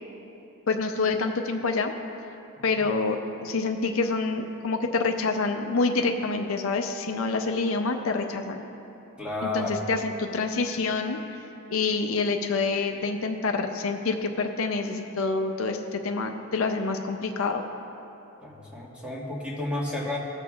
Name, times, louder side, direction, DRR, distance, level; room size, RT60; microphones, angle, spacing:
voice 1, 0.7-1.9 2.6-8.6 9.5-11.2 11.7-17.6, left 3 dB, 65° left, 4 dB, 0.5 m, -27 dB
voice 2, 9.2-9.8 18.4-20.2, left 2 dB, 5° right, -5 dB, 1.3 m, -31 dB
19.5 x 6.8 x 2.4 m, 3.0 s
head